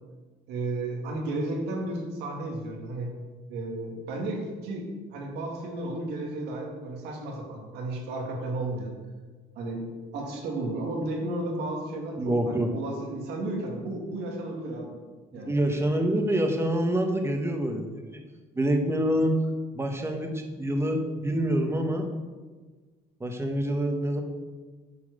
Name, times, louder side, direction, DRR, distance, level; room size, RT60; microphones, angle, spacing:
voice 1, 0.5-3.1 3.5-4.8 5.1-8.9 9.6-9.8 10.1-14.9 15.3-15.5, right 2 dB, 85° right, 0 dB, 2.4 m, -33 dB
voice 2, 12.2-12.7 15.3-18.2 18.5-19.4 19.7-22.1 23.2-24.2, right 1 dB, 15° right, 4 dB, 1.5 m, -26 dB
11.0 x 4.7 x 6.7 m, 1.3 s
cardioid pair, 110°, 17 cm